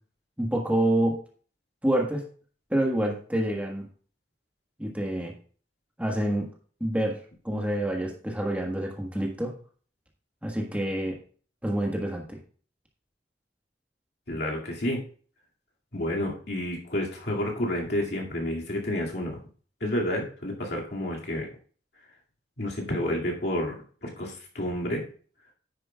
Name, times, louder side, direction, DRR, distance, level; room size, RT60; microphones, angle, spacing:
voice 1, 0.4-1.2 1.8-2.2 2.7-3.9 4.8-5.3 6.0-6.5 6.8-9.5 10.4-11.2 11.6-12.4, right 1 dB, 10° right, 0 dB, 1.4 m, -27 dB
voice 2, 14.3-15.0 15.9-19.4 19.8-21.5 22.6-23.8 24.0-25.0, left 1 dB, 65° left, -1 dB, 2.3 m, -30 dB
10.0 x 9.6 x 2.4 m, 0.43 s
head